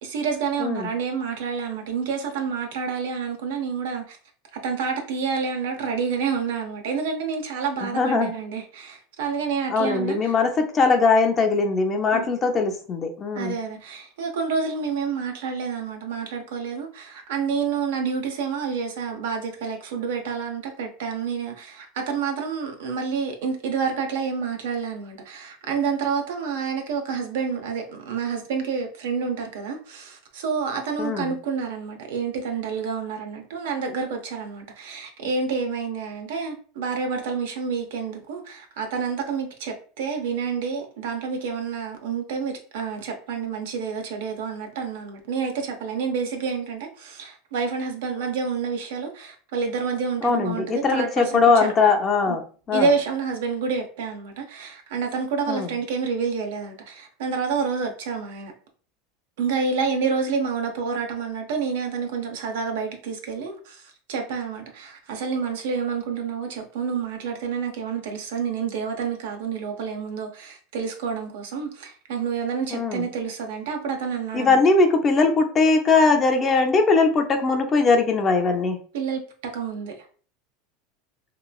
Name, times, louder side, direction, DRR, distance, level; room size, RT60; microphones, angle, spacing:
voice 1, 0.0-4.2 4.5-10.3 12.1-12.2 13.3-51.7 52.3-52.4 52.7-58.5 59.4-63.8 64.1-74.6 78.9-80.0, right 5 dB, 85° right, 0.6 m, -28 dB
voice 2, 7.8-8.3 9.7-13.5 31.0-31.3 50.2-52.4 52.7-52.9 55.5-55.7 72.7-73.1 74.3-78.8, left 4 dB, 25° left, 0.4 m, -20 dB
3.0 x 2.2 x 2.3 m
supercardioid pair, 145°, 0 cm